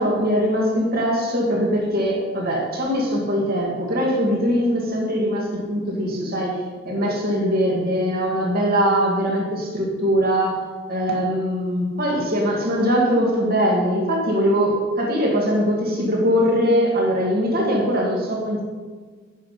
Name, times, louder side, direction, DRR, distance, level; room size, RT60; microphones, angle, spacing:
voice 1, 0.0-6.6 6.9-10.6 10.9-18.6, equal, 50° right, -2 dB, 2.1 m, -21 dB
10.5 x 5.7 x 5.2 m, 1.5 s
head